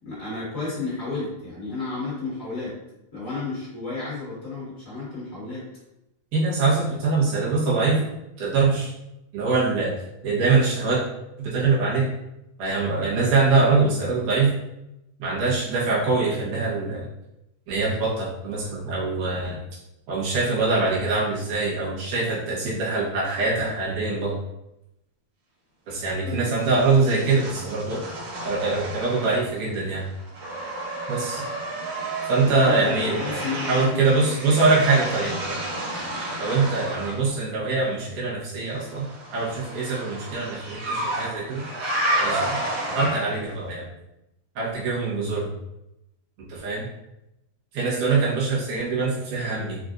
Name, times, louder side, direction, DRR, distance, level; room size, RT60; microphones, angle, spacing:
voice 1, 0.0-2.8 3.1-5.7 26.2-26.5 32.4-34.8, left 3 dB, 40° left, -8 dB, 1.3 m, -32 dB
voice 2, 6.3-8.0 8.4-8.9 9.3-9.9 10.2-11.0 11.4-12.1 12.6-14.5 15.2-17.1 17.7-19.6 20.1-24.3 25.9-28.0 28.4-30.1 31.1-31.5 32.3-33.4 33.7-35.5 36.4-39.0 39.3-41.6 42.2-42.6 42.9-43.9 44.6-45.5 46.4-46.9 47.7-49.8, right 3 dB, 85° right, -6 dB, 2.7 m, -23 dB
sound 1, 26.6-29.7 29.9-37.2 38.8-43.5, right 1 dB, 55° right, 1.9 m, -31 dB
5.8 x 2.5 x 2.5 m, 0.89 s
omnidirectional pair, 3.6 m